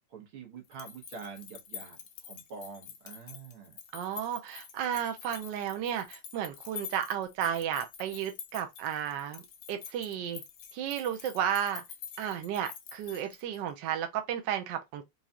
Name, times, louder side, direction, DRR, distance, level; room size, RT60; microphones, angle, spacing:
voice 1, 0.1-3.8, right 5 dB, 85° right, 2.1 m, -46 dB
sound 1, 0.6-13.7, left 8 dB, 75° left, 1.5 m, -47 dB
voice 2, 3.9-9.4 9.7-10.4 10.7-11.8 12.2-15.0, right 9 dB, 70° right, 1.3 m, -33 dB
4.8 x 2.8 x 2.4 m
omnidirectional pair, 2.3 m